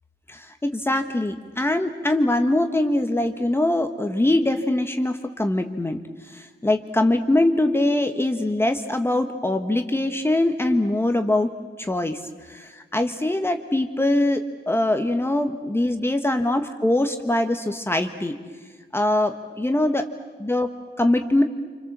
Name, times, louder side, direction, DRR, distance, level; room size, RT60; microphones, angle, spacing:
voice 1, 0.3-11.5 11.8-18.4 18.9-20.1 20.4-21.4, left 1 dB, 10° left, 6 dB, 1.2 m, -23 dB
28.0 x 26.5 x 7.4 m, 1.5 s
wide cardioid pair, 135°, 19 cm